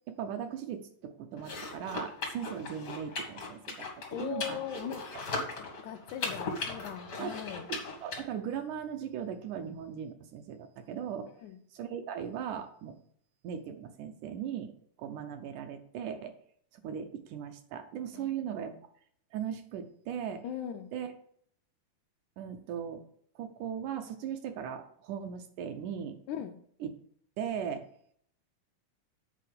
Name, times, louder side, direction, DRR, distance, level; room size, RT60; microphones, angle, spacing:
voice 1, 0.1-4.6 7.2-7.4 7.7-11.3 11.7-13.0 13.4-14.7 15.0-16.3 16.8-18.8 19.3-20.5 20.9-21.1 22.4-23.0 23.4-26.2 26.8-26.9 27.4-27.9, right 8 dB, 75° right, 7 dB, 2.0 m, -38 dB
sound 1, 1.4-8.2, left 3 dB, 50° left, 1.1 m, -38 dB
voice 2, 4.1-5.0 5.6-7.7 11.4-11.6 18.1-18.5 20.4-20.9 26.3-26.5, left 9 dB, 75° left, 6 dB, 1.9 m, -39 dB
7.7 x 4.4 x 6.7 m, 0.63 s
omnidirectional pair, 3.8 m